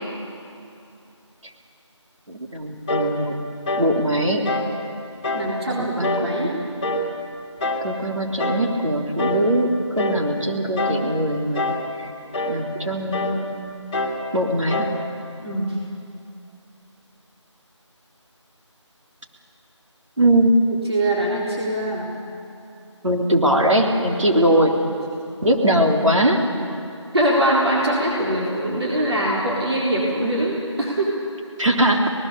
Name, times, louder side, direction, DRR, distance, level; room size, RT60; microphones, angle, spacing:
voice 1, 2.3-3.3 3.8-4.4 5.8-6.5 7.8-11.7 12.0-12.1 12.5-13.6 14.3-14.9 20.2-20.6 23.0-24.7 25.4-26.4 31.6-32.1, right 1 dB, 85° right, 0 dB, 3.4 m, -21 dB
sound 1, 2.9-3.2 3.6-3.9 4.4-4.7 5.2-5.5 6.0-6.3 6.8-7.1 7.6-7.9 8.4-8.7 9.2-9.5 10.0-10.3 10.8-11.1 11.5-11.9 12.3-12.6 13.1-13.4 13.9-14.2 14.7-15.0, left 1 dB, 10° left, 1.6 m, -25 dB
voice 2, 5.3-6.6 15.4-15.8 20.9-22.1 26.5-26.7 27.1-31.2, right 1 dB, 60° right, -5 dB, 4.0 m, -23 dB
25.5 x 19.0 x 6.9 m, 2.7 s
figure-of-eight pair, 175°, 16 cm